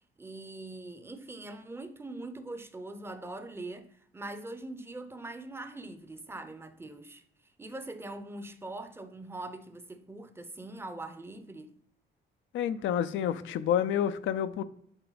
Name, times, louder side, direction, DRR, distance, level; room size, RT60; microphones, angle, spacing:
voice 1, 0.2-7.2 7.6-11.7, right 2 dB, 10° right, 0.6 m, -42 dB
voice 2, 12.5-14.6, left 9 dB, 75° left, 0.5 m, -29 dB
8.1 x 3.4 x 3.9 m
cardioid pair, 90°, 20 cm